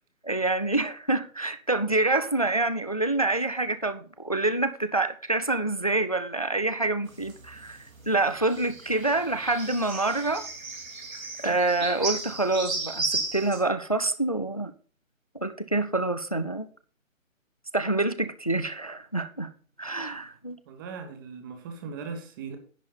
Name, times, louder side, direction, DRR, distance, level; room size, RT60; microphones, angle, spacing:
voice 1, 0.2-10.5 11.4-14.7 15.4-16.7 17.7-19.5 19.8-20.6, right 2 dB, 30° left, 0.3 m, -27 dB
sound 1, 7.1-13.6, right 3 dB, 80° right, 2.8 m, -35 dB
voice 2, 20.7-22.6, right 5 dB, 15° right, 1.0 m, -38 dB
10.5 x 4.4 x 6.8 m
figure-of-eight pair, 150°, 40 cm